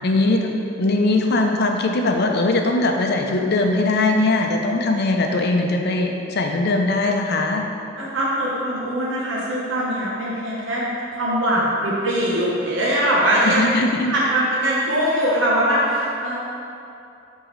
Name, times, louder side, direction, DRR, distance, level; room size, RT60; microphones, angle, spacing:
voice 1, 0.0-7.7 13.4-14.1, left 2 dB, 55° left, 3 dB, 0.6 m, -20 dB
voice 2, 8.0-10.8 11.1-13.7 14.1-16.4, right 1 dB, 70° right, -6 dB, 1.0 m, -21 dB
9.9 x 3.7 x 3.1 m, 2.6 s
head